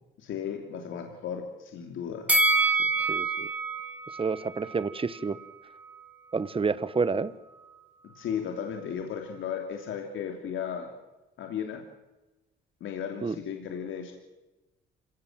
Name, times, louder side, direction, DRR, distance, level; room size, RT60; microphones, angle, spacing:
voice 1, 0.2-2.3 2.8-2.9 8.0-10.9 11.4-11.8 12.8-14.2, left 8 dB, 80° left, 3 dB, 3.2 m, -35 dB
Bell, 2.3-5.5 5.8-5.9, right 2 dB, 5° right, 3.1 m, -27 dB
voice 2, 3.1-3.5 4.2-5.4 6.3-7.3 13.2-13.3, right 4 dB, 25° right, 16 dB, 1.3 m, -29 dB
26.0 x 17.5 x 7.9 m, 1.1 s
cardioid pair, 90°, 20 cm